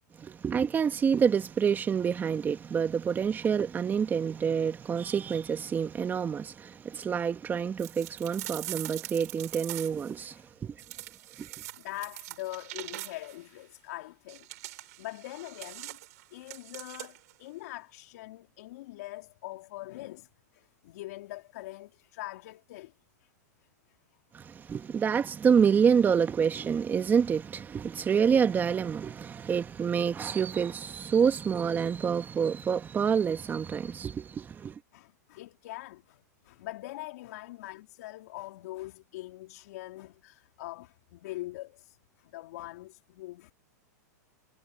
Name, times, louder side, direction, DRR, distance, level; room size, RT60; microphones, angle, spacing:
voice 1, 0.2-10.7 11.4-11.5 24.3-34.7, right 7 dB, 20° right, 1.6 m, -27 dB
sound 1, 7.8-10.2 10.8-13.4 14.3-17.3, right 18 dB, 65° right, 4.0 m, -42 dB
voice 2, 11.7-16.0 16.3-22.9 23.2-23.3 33.9-34.0 34.6-34.7 34.9-43.5, left 18 dB, 65° left, 3.5 m, -43 dB
hypercardioid pair, 125°, 9 cm